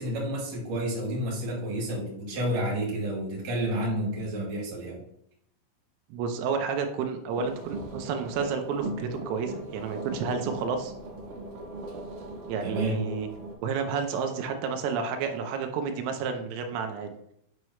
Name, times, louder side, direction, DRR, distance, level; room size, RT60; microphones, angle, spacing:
voice 1, 0.0-5.0 12.6-13.0, right 1 dB, 40° right, -3 dB, 2.9 m, -30 dB
voice 2, 6.1-10.9 12.5-13.3 13.6-17.1, right 5 dB, 85° right, 5 dB, 3.5 m, -30 dB
sound 1, 7.3-13.5, right 2 dB, 65° right, 2.7 m, -38 dB
9.2 x 6.0 x 3.2 m, 0.73 s
omnidirectional pair, 5.8 m